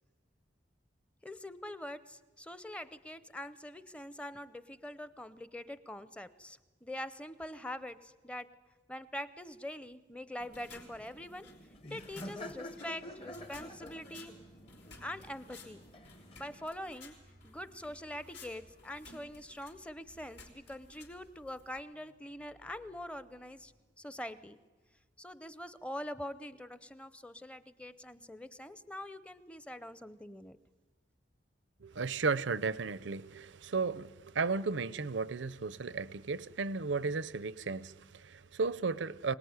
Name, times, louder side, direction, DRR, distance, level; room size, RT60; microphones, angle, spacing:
voice 1, 1.2-8.5 8.9-11.5 11.8-14.3 15.0-15.8 16.4-17.1 17.4-23.7 24.0-24.6 25.2-30.6, left 1 dB, 5° left, 0.7 m, -44 dB
sound 1, 10.4-21.9, left 3 dB, 80° left, 4.8 m, -57 dB
Laughter, 10.4-16.7, left 1 dB, 30° left, 1.0 m, -49 dB
sound 2, 13.0-25.4 25.7-25.9, equal, 50° left, 3.5 m, -65 dB
voice 2, 31.8-39.3, right 4 dB, 85° right, 0.7 m, -34 dB
24.0 x 19.0 x 9.6 m
head